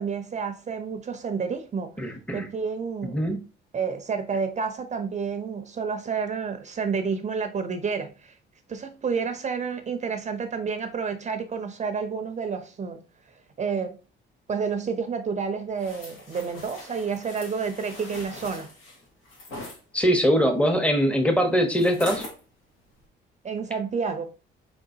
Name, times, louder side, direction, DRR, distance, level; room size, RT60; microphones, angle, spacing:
voice 1, 0.0-1.9 2.3-3.2 3.7-8.3 8.7-13.0 13.6-14.0 14.5-18.7 23.4-24.3, right 5 dB, 35° right, 0.6 m, -30 dB
voice 2, 2.0-2.5 3.0-3.4 19.9-22.2, equal, 5° left, 0.9 m, -22 dB
sound 1, 15.8-19.8 21.8-22.4 22.9-23.1, left 1 dB, 85° left, 1.6 m, -41 dB
4.5 x 3.8 x 2.7 m
cardioid pair, 90°, 20 cm